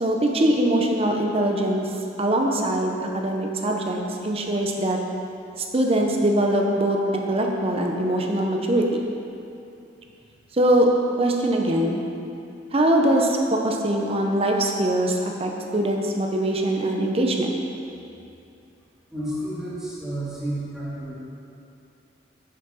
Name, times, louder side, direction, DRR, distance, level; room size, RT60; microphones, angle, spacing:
voice 1, 0.0-1.9 2.2-5.0 5.6-9.1 10.5-10.9 11.2-12.0 12.7-17.5, right 1 dB, 30° right, 1 dB, 0.7 m, -22 dB
voice 2, 19.1-21.2, right 1 dB, 5° right, -10 dB, 1.9 m, -31 dB
6.5 x 5.8 x 5.5 m, 2.7 s
head